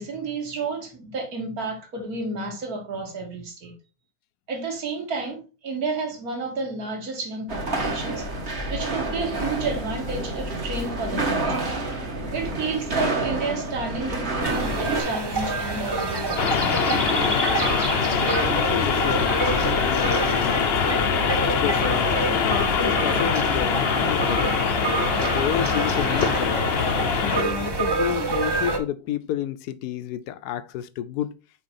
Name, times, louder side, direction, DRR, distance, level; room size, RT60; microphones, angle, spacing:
voice 1, 0.0-3.7 4.5-8.3 8.7-11.9 12.3-16.9, right 3 dB, 70° right, 2.2 m, -31 dB
sound 1, 7.5-15.0, right 2 dB, 45° right, 1.6 m, -28 dB
sound 2, 14.4-28.8, right 2 dB, 20° right, 0.7 m, -27 dB
sound 3, 16.4-27.4, left 7 dB, 55° left, 0.7 m, -24 dB
voice 2, 18.3-20.7 21.4-24.7 25.2-26.7 27.2-31.4, left 10 dB, 85° left, 1.2 m, -31 dB
6.1 x 4.5 x 4.2 m
omnidirectional pair, 1.6 m